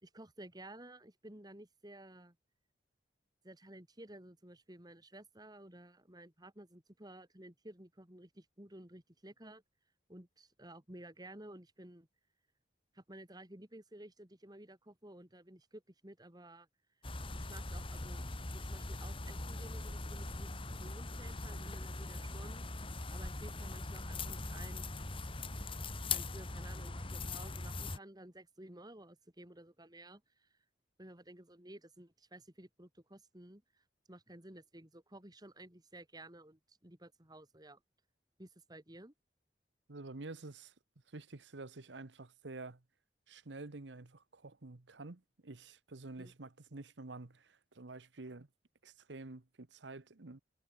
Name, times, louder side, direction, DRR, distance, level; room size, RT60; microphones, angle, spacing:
voice 1, 0.0-2.3 3.4-9.6 10.1-12.1 12.9-16.7 17.3-22.7 22.9-24.9 26.1-30.5 31.0-37.8 38.4-39.1 46.2-46.3, right 1 dB, 25° right, 3.4 m, -54 dB
sound 1, 17.0-28.0, left 3 dB, 30° left, 1.7 m, -41 dB
voice 2, 39.9-40.7 41.1-42.8 43.3-48.5 48.8-50.4, right 2 dB, 85° right, 1.2 m, -49 dB
head